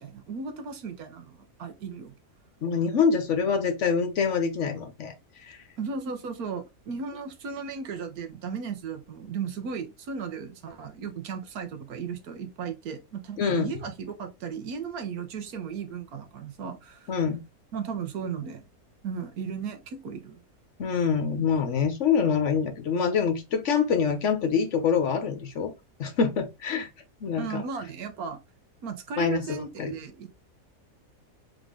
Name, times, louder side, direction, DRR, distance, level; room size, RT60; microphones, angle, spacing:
voice 1, 0.0-2.1 5.8-17.1 17.7-18.6 19.0-20.4 27.3-28.4 28.8-30.4, right 6 dB, 75° right, 1.4 m, -35 dB
voice 2, 2.6-5.1 5.5-5.6 13.4-13.7 17.1-17.4 20.8-25.7 26.0-26.9 27.2-27.6 29.2-29.9, left 6 dB, 60° left, 1.0 m, -25 dB
3.7 x 3.7 x 3.6 m
omnidirectional pair, 1.6 m